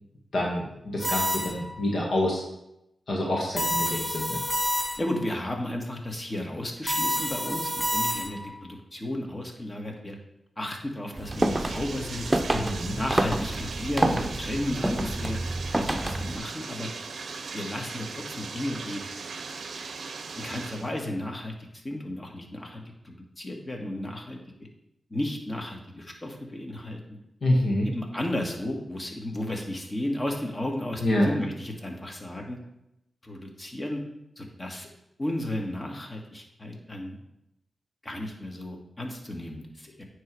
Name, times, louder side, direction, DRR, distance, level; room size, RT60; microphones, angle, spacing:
voice 1, 0.3-2.4 3.1-4.4 12.5-13.0 27.4-27.9 31.0-31.3, left 1 dB, 70° left, -2 dB, 1.4 m, -27 dB
sound 1, 1.0-1.8 3.6-5.2 6.9-8.5, equal, ahead, 2.8 m, -28 dB
voice 2, 5.0-10.2 10.6-12.6 12.9-15.4 15.7-16.9 17.5-19.0 20.4-24.4 25.1-27.0 27.9-32.6 33.2-34.0 34.4-34.9 35.2-37.2 38.0-40.0, left 1 dB, 35° left, 1 dB, 1.8 m, -33 dB
Bathtub (filling or washing), 11.1-20.9, right 4 dB, 80° right, 0.6 m, -39 dB
sound 2, 11.2-16.4, right 1 dB, 20° right, 0.7 m, -28 dB
9.3 x 3.3 x 4.8 m, 0.84 s
cardioid pair, 40°, 0 cm